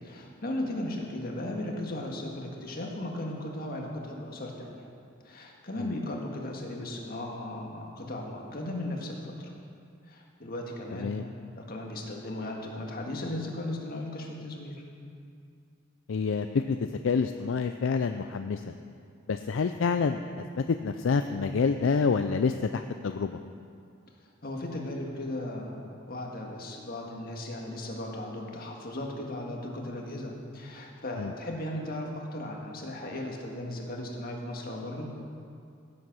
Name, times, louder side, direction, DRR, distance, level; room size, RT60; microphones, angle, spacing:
voice 1, 0.0-4.8 5.3-9.5 10.1-11.1 11.5-14.8 24.4-35.1, left 1 dB, 50° left, 0 dB, 1.8 m, -36 dB
voice 2, 16.1-16.8 17.0-18.6 19.3-20.2 20.8-23.3 31.2-31.3, left 5 dB, 70° left, 8 dB, 0.4 m, -27 dB
15.5 x 7.8 x 6.1 m, 2.4 s
head